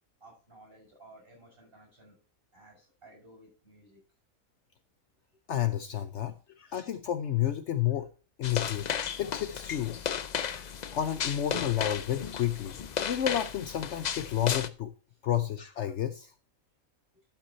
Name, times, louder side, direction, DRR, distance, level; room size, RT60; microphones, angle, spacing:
voice 1, 0.2-2.2 2.5-4.0, right 1 dB, 40° right, 0 dB, 6.0 m, -55 dB
voice 2, 5.5-8.1 8.4-8.9 9.2-10.0 10.4-12.8 13.0-14.9 15.2-16.3, left 11 dB, 65° left, 11 dB, 0.8 m, -31 dB
sound 1, 8.4-14.7, left 8 dB, 80° left, 0.3 m, -34 dB
12.0 x 5.8 x 4.2 m, 0.36 s
omnidirectional pair, 1.5 m